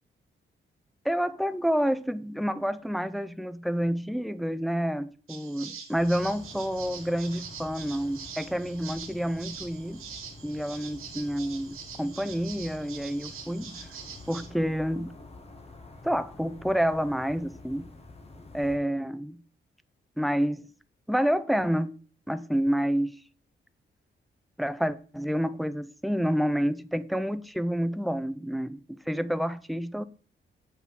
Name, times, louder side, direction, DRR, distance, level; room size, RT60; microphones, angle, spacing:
voice 1, 1.0-10.0 10.4-13.9 14.3-15.1 16.0-17.9 18.5-19.4 20.2-20.7 21.1-21.9 22.3-23.1 24.6-30.0, equal, ahead, 0.5 m, -29 dB
sound 1, 5.3-14.5, right 7 dB, 90° right, 1.8 m, -44 dB
sound 2, 5.9-18.8, left 3 dB, 30° left, 1.6 m, -48 dB
7.8 x 5.8 x 5.9 m
wide cardioid pair, 145°, 21 cm